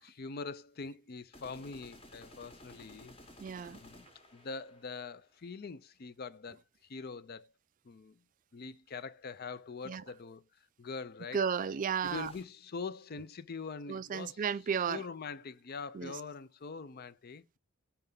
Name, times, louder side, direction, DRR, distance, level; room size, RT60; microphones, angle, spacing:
voice 1, 0.0-3.1 3.7-6.6 6.9-7.5 7.8-8.2 8.5-10.4 10.8-11.4 12.0-14.4 14.9-17.6, left 4 dB, 45° left, 0.5 m, -43 dB
sound 1, 1.3-5.4 12.0-12.4, left 1 dB, 25° left, 1.1 m, -55 dB
voice 2, 3.4-3.8 9.9-10.0 11.3-12.3 13.9-15.0 15.9-16.2, right 7 dB, 35° right, 0.3 m, -33 dB
5.6 x 3.5 x 5.3 m
head